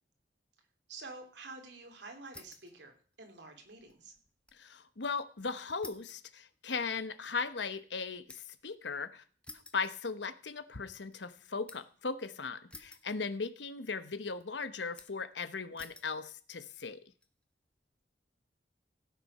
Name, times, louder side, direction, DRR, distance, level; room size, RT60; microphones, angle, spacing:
voice 1, 0.9-4.1, right 3 dB, 80° right, 4 dB, 3.0 m, -49 dB
sound 1, 2.3-2.8 3.1-4.7 5.0-5.1 5.8-8.7 9.4-10.6 10.9-12.0 12.7-13.6 13.8-14.4 15.0-15.3 15.8-16.2 16.8-17.3, left 2 dB, 5° left, 1.0 m, -54 dB
voice 2, 4.6-9.2 9.7-17.0, left 4 dB, 90° left, 12 dB, 1.0 m, -38 dB
16.5 x 7.4 x 5.5 m, 0.42 s
head